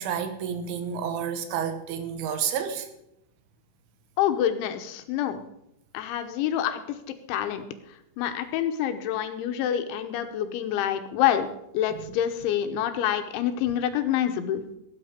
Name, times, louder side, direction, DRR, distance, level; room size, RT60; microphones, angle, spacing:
voice 1, 0.0-2.9, right 8 dB, 80° right, 9 dB, 3.7 m, -30 dB
voice 2, 4.2-5.4 5.9-7.0 7.3-7.6 8.2-11.5 11.7-14.6, left 10 dB, 80° left, 8 dB, 3.2 m, -27 dB
17.0 x 8.9 x 5.1 m, 0.81 s
omnidirectional pair, 5.6 m